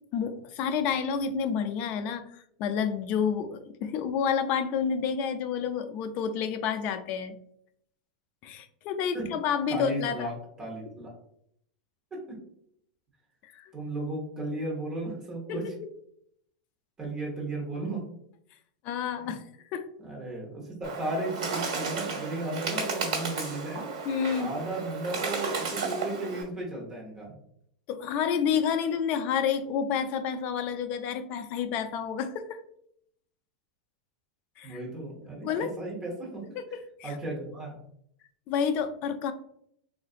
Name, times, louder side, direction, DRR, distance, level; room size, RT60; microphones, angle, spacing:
voice 1, 0.1-7.3 8.4-10.3 13.5-13.7 15.5-15.7 18.8-19.4 19.7-19.9 24.1-24.6 27.9-32.6 34.6-34.8 35.4-35.7 36.6-37.2 38.5-39.3, left 7 dB, 40° left, 9 dB, 0.3 m, -29 dB
voice 2, 9.7-11.1 12.1-12.4 13.7-15.7 17.0-18.1 20.0-23.9 24.3-27.3 34.6-37.8, right 2 dB, 15° right, -3 dB, 0.9 m, -35 dB
Bird, 20.8-26.4, right 4 dB, 65° right, 1.3 m, -33 dB
3.8 x 2.5 x 2.4 m, 0.70 s
supercardioid pair, 150°, 4 cm